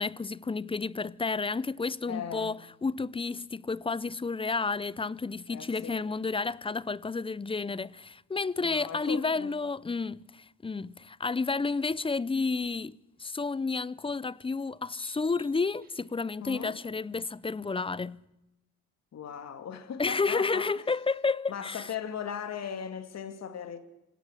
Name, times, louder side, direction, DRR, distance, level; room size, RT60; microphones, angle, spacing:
voice 1, 0.0-18.2 20.0-21.9, left 4 dB, 20° left, 0.7 m, -31 dB
voice 2, 2.1-2.6 5.5-6.0 8.6-9.5 16.4-16.8 19.1-20.8 21.5-23.8, left 8 dB, 60° left, 2.4 m, -38 dB
sound 1, 13.2-13.3 14.9-16.3, right 2 dB, 30° right, 6.0 m, -55 dB
27.5 x 18.0 x 6.6 m
cardioid pair, 90°, 30 cm